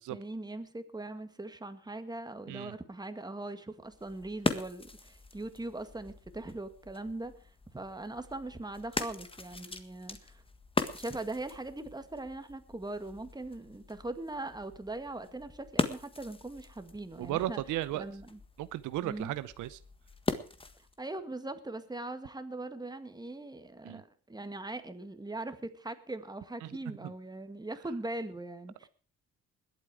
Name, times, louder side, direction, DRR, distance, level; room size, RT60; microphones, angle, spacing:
voice 1, 0.1-10.4 10.9-17.6 17.9-18.4 19.0-19.3 21.0-28.9, right 2 dB, 15° right, 9 dB, 1.9 m, -41 dB
sound 1, 3.8-21.0, left 3 dB, 20° left, 1.6 m, -40 dB
voice 2, 17.2-18.0 18.6-19.8 23.8-24.0 26.6-26.8, right 14 dB, 85° right, 15 dB, 0.8 m, -35 dB
21.0 x 8.5 x 4.9 m, 0.40 s
cardioid pair, 90°, 30 cm